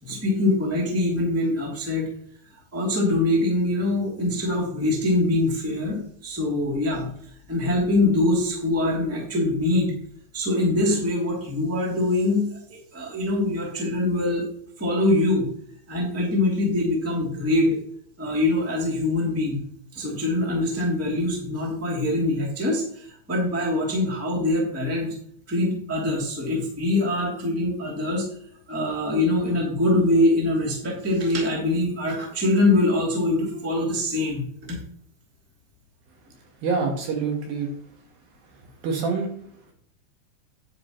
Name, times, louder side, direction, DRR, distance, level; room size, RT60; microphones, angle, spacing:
voice 1, 0.0-2.1 2.7-7.1 7.5-9.9 10.3-12.4 12.7-14.5 14.8-15.5 15.9-17.7 18.2-19.6 19.9-25.1 25.5-28.3 28.7-34.8, left 2 dB, 5° right, -2 dB, 1.6 m, -23 dB
voice 2, 36.6-37.7 38.5-39.3, right 4 dB, 65° right, 2 dB, 2.9 m, -26 dB
9.9 x 8.3 x 3.0 m, 0.62 s
omnidirectional pair, 4.9 m